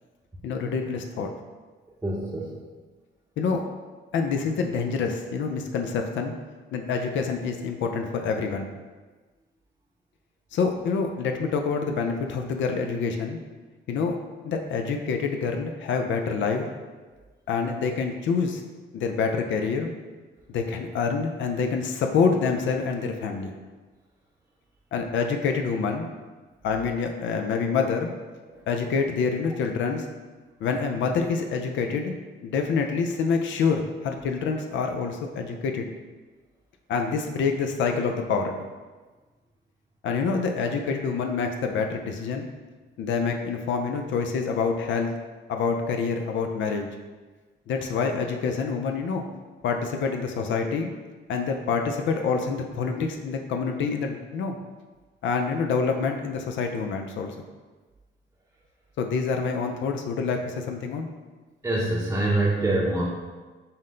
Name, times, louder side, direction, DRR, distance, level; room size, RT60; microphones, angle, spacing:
voice 1, 0.4-1.3 3.4-3.6 4.1-6.3 6.7-8.7 10.5-13.4 13.9-14.1 14.4-16.7 17.5-18.6 18.9-19.9 20.5-23.5 24.9-26.1 26.6-28.1 28.7-30.1 30.6-32.1 32.4-35.9 36.9-38.7 40.0-42.5 43.0-45.1 45.5-46.9 47.7-49.2 49.6-50.9 51.3-54.6 55.2-57.3 59.0-61.1, left 5 dB, 70° left, 4 dB, 0.5 m, -26 dB
voice 2, 2.0-2.5 28.5-28.6 61.6-63.0, right 2 dB, 10° right, -6 dB, 0.7 m, -25 dB
5.5 x 2.1 x 3.8 m, 1.3 s
cardioid pair, 90°, 20 cm